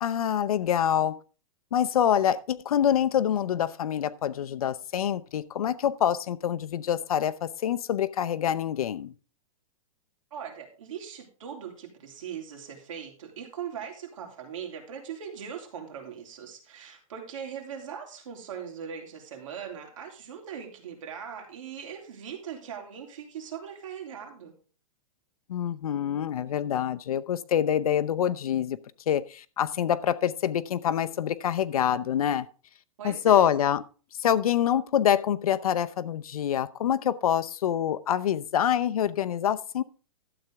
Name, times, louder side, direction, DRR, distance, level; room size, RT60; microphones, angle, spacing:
voice 1, 0.0-1.2 1.7-9.1 25.5-28.8 29.1-32.5 33.0-33.8 34.2-39.8, left 10 dB, 90° left, 0.8 m, -26 dB
voice 2, 10.3-24.5 33.0-33.6, right 8 dB, 65° right, 3.3 m, -40 dB
12.5 x 8.0 x 3.5 m
supercardioid pair, 170°, 18 cm